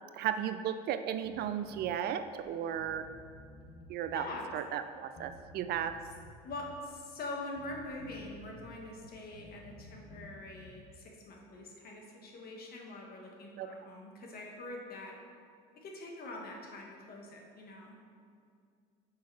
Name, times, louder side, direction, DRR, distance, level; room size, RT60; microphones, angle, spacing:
voice 1, 0.1-3.1 3.9-4.2 4.5-6.0 13.6-13.7, right 9 dB, 50° right, 10 dB, 0.4 m, -35 dB
Bass guitar, 1.2-1.9 2.4-2.5 2.8-4.4 5.2-6.8 7.6-8.7 9.0-10.8, left 2 dB, 65° left, 1.2 m, -53 dB
voice 2, 4.1-4.5 6.4-15.2 15.7-18.0, left 2 dB, 50° left, 0 dB, 1.5 m, -44 dB
6.4 x 4.7 x 4.7 m, 2.3 s
supercardioid pair, 90°, 20 cm